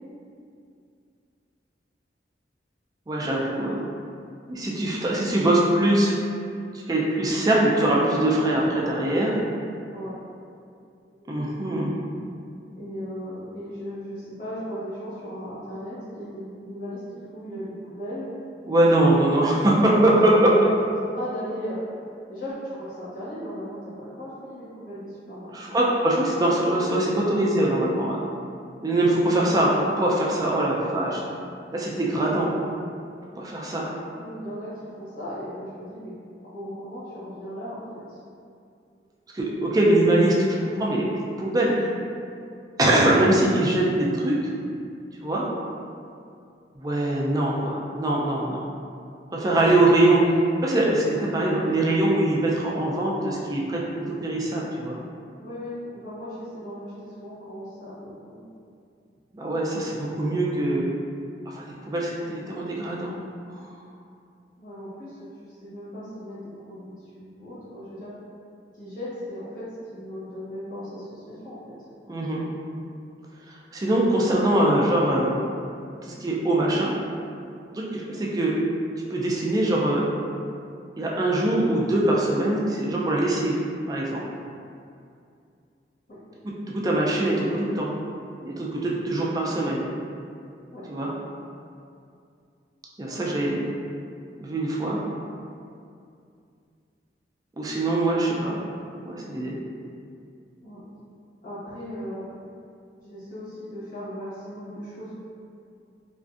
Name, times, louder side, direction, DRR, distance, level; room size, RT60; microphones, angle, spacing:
voice 1, 3.1-3.8 4.5-6.1 6.7-9.4 11.3-11.9 18.7-20.5 25.5-28.2 28.8-31.2 31.7-32.5 33.4-33.9 39.3-41.1 41.4-41.9 42.8-44.4 45.2-45.5 46.8-48.7 49.3-50.2 50.6-55.0 59.3-60.8 61.5-63.1 63.5-63.6 72.1-72.4 73.7-75.4 76.0-76.9 77.7-78.6 79.1-80.1 81.0-83.6 83.9-84.2 86.4-87.9 88.4-89.8 90.9-91.1 93.0-93.6 94.4-95.0 97.6-98.6 99.0-99.5, right 1 dB, 20° right, -4 dB, 0.3 m, -22 dB
voice 2, 12.7-18.3 20.0-20.7 21.0-21.8 22.3-25.9 26.3-26.4 34.2-36.1 36.4-38.2 55.4-58.4 64.6-68.1 68.7-71.7 86.1-86.2 90.7-90.8 93.1-93.6 100.6-100.8 101.4-102.3 103.0-105.2, equal, 50° left, -10 dB, 0.9 m, -37 dB
2.5 x 2.3 x 2.4 m, 2.4 s
head